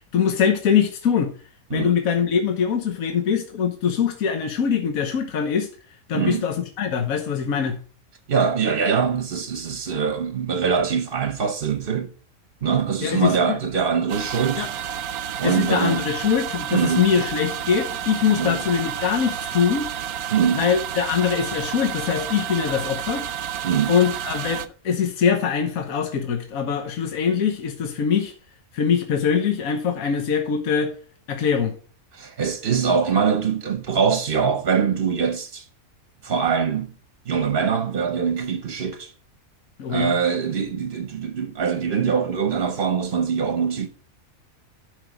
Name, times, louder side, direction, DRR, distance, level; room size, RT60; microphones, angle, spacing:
voice 1, 0.0-1.3 1.7-5.7 6.1-7.8 13.0-13.6 14.6-14.7 15.4-19.9 20.5-23.2 23.9-28.3 28.7-30.9 31.3-31.7 39.8-40.2, left 7 dB, 70° left, 1.5 m, -23 dB
voice 2, 6.1-6.4 8.3-12.1 12.6-14.7 15.4-16.1 16.7-17.1 18.4-18.6 20.3-20.7 23.6-23.9 32.1-35.7 36.2-36.9 37.3-39.1 39.9-43.9, right 6 dB, 45° right, 0.9 m, -23 dB
sound 1, 14.1-24.7, right 9 dB, 80° right, 1.2 m, -30 dB
11.0 x 5.1 x 4.9 m
omnidirectional pair, 1.5 m